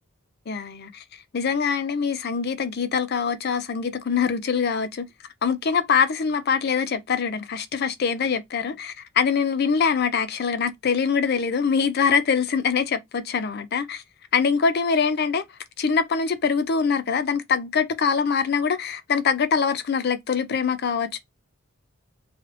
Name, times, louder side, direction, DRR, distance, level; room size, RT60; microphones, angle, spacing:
voice 1, 0.5-5.1 5.4-14.0 14.3-15.4 15.8-21.2, left 6 dB, 50° left, 0.4 m, -24 dB
3.1 x 2.5 x 3.1 m
head